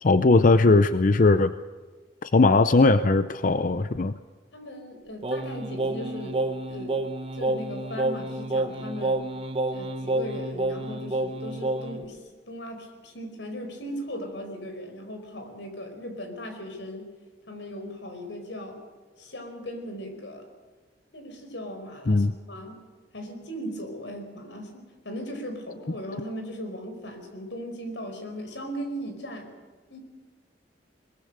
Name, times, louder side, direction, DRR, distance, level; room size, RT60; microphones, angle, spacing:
voice 1, 0.0-1.5 2.2-4.2 22.1-22.3, left 3 dB, 50° left, 11 dB, 0.6 m, -19 dB
voice 2, 4.5-6.4 6.7-7.0 7.3-9.2 9.7-12.2 12.5-17.1 17.5-18.8 19.2-20.5 21.1-22.8 23.1-29.5 29.9-30.0, equal, 85° left, 6 dB, 5.0 m, -38 dB
Singing, 5.2-12.0, right 2 dB, 35° right, 1.4 m, -29 dB
22.0 x 21.5 x 6.7 m, 1.4 s
head